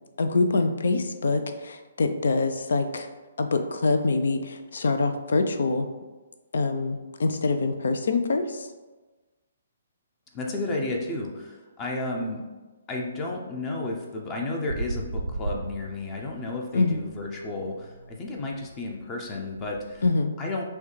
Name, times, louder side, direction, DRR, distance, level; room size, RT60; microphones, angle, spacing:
voice 1, 0.2-3.1 3.4-5.9 6.5-8.7 16.7-17.0 20.0-20.3, left 3 dB, 60° left, 8 dB, 0.4 m, -25 dB
voice 2, 10.3-12.5 12.9-20.0 20.4-20.6, left 2 dB, 20° left, 1 dB, 0.6 m, -32 dB
sound 1, 14.7-16.5 16.8-20.1, right 2 dB, 80° right, 0.5 m, -36 dB
6.2 x 2.2 x 3.2 m, 1.2 s
figure-of-eight pair, 130°, 0 cm